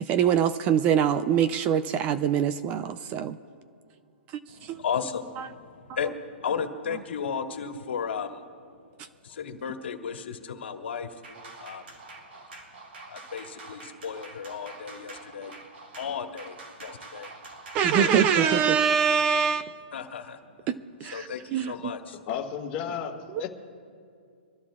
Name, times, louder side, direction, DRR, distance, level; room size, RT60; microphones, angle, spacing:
voice 1, 0.1-3.4 4.7-4.8 17.7-19.8 20.7-21.9, right 8 dB, 25° right, 12 dB, 0.4 m, -24 dB
voice 2, 4.5-8.4 9.2-11.2 11.6-11.8 13.1-15.5 15.9-17.3 17.9-18.6 19.9-20.4 21.0-22.2, left 6 dB, 75° left, 5 dB, 1.6 m, -34 dB
sound 1, 11.2-18.1, right 3 dB, 80° right, 3.4 m, -46 dB
voice 3, 21.1-21.4 22.3-23.5, left 8 dB, 25° left, 1 dB, 1.9 m, -34 dB
25.5 x 14.5 x 2.4 m, 2.3 s
hypercardioid pair, 155°, 6 cm